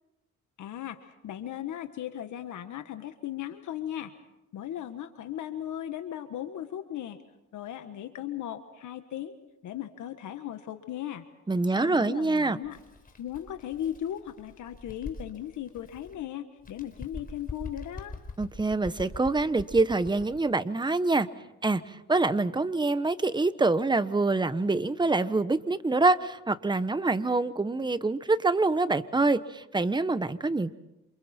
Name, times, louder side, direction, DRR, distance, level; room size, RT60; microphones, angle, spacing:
voice 1, 0.6-4.1 4.5-7.2 7.5-9.4 9.6-11.2 11.7-12.8 13.2-18.1, left 11 dB, 75° left, 8 dB, 1.5 m, -37 dB
voice 2, 11.5-12.6 18.4-21.3 21.6-30.7, right 3 dB, 15° right, 13 dB, 1.1 m, -25 dB
Bird, 12.6-16.2 16.6-20.4, left 3 dB, 30° left, 4.6 m, -43 dB
28.0 x 28.0 x 4.5 m, 0.94 s
cardioid pair, 90°, 30 cm